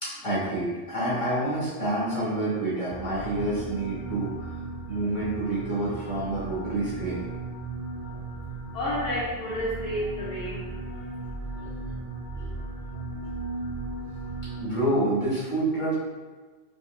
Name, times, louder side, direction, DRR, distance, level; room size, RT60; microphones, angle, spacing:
voice 1, 0.0-4.6 4.9-7.3 11.6-11.7 12.3-12.5 14.4-15.9, right 1 dB, 25° left, -10 dB, 1.5 m, -28 dB
sound 1, 2.9-14.6, right 3 dB, 85° left, 1.6 m, -36 dB
voice 2, 8.7-11.1, left 1 dB, 60° left, -6 dB, 0.8 m, -31 dB
4.5 x 2.8 x 2.5 m, 1.4 s
omnidirectional pair, 1.2 m